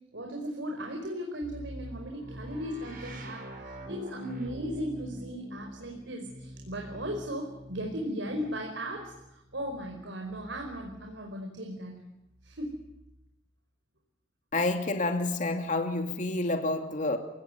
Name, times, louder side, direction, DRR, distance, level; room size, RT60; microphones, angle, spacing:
voice 1, 0.1-12.0 12.4-12.8, equal, 75° right, 5.1 m, -37 dB
sound 1, 1.4-11.2 12.2-13.3, right 1 dB, 50° right, 5.7 m, -45 dB
voice 2, 14.5-17.2, left 2 dB, 40° left, 2.6 m, -29 dB
30.0 x 19.0 x 9.5 m
head